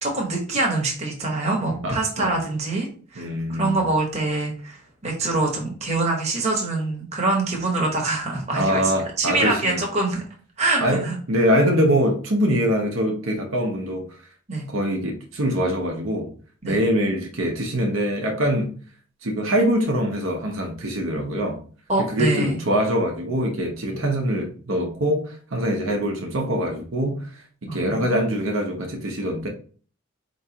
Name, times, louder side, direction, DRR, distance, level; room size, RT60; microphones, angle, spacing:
voice 1, 0.0-2.9 3.1-8.9 9.2-10.2 10.6-11.2 14.5-14.7 16.6-16.8 21.9-22.6 23.9-24.0 27.7-28.2, right 2 dB, 30° right, 1.0 m, -24 dB
voice 2, 1.8-2.3 3.2-3.8 8.5-9.8 10.8-14.1 14.7-16.3 16.7-18.7 19.2-21.6 22.1-29.5, equal, 70° right, 0.8 m, -23 dB
4.7 x 3.0 x 2.8 m
head